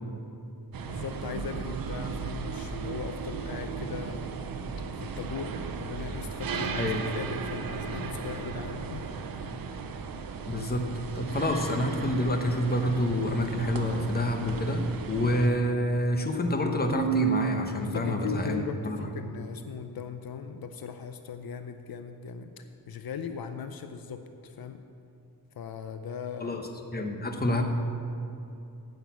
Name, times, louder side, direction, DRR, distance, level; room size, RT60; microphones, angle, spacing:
sound 1, 0.7-15.5, right 5 dB, 65° right, 0.7 m, -36 dB
voice 1, 0.8-4.3 5.0-9.6 17.8-24.8 25.6-26.6, left 6 dB, 70° left, 8 dB, 0.6 m, -39 dB
voice 2, 10.5-10.8 11.1-14.8 15.1-19.1 26.4-27.7, left 1 dB, 25° left, 3 dB, 1.0 m, -28 dB
Keyboard (musical), 16.9-18.7, right 7 dB, 30° right, 0.7 m, -30 dB
10.0 x 6.7 x 8.3 m, 2.7 s
wide cardioid pair, 165°, 37 cm